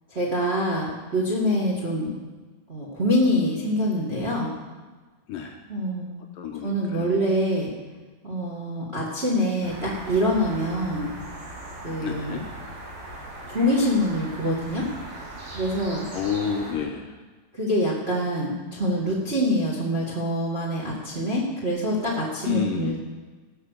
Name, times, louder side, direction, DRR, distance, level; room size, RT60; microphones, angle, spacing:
voice 1, 0.1-2.1 2.7-4.5 5.7-6.2 6.6-7.7 8.2-11.1 11.8-12.4 13.5-14.9 15.5-16.1 17.5-23.0, equal, 25° right, -3 dB, 1.4 m, -25 dB
voice 2, 6.4-7.1 12.0-12.4 16.1-17.2 22.4-23.0, left 7 dB, 75° left, 3 dB, 2.3 m, -29 dB
sound 1, 9.6-16.7, right 1 dB, 80° right, 6.3 m, -39 dB
17.5 x 6.2 x 6.6 m, 1.3 s
omnidirectional pair, 4.5 m